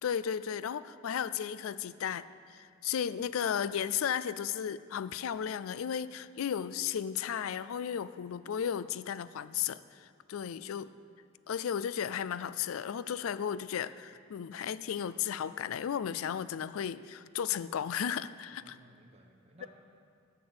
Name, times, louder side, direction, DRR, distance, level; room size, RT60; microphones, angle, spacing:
voice 1, 0.0-10.9 11.5-18.8, left 8 dB, 80° left, 16 dB, 0.4 m, -34 dB
voice 2, 18.5-19.7, right 1 dB, 30° right, 0 dB, 1.0 m, -59 dB
10.5 x 6.7 x 7.9 m, 2.2 s
head